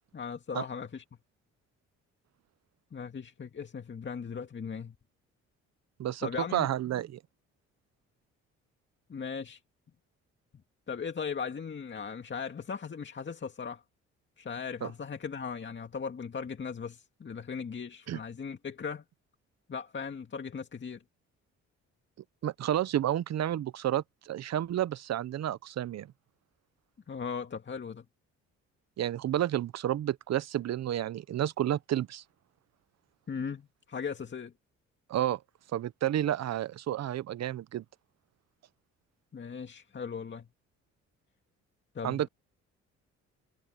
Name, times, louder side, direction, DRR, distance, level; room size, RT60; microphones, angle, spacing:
voice 1, 0.1-1.0 2.9-5.0 6.2-6.7 9.1-9.6 10.9-13.8 14.4-19.0 19.7-21.0 27.1-28.0 33.3-34.5 39.3-40.5 41.9-42.3, left 6 dB, 40° left, 2.2 m, -38 dB
voice 2, 6.0-7.2 14.8-14.9 18.1-18.2 22.4-26.1 29.0-32.2 35.1-35.4 35.7-37.8 42.0-42.3, right 12 dB, 60° right, 1.0 m, -31 dB
supercardioid pair, 70°, 30 cm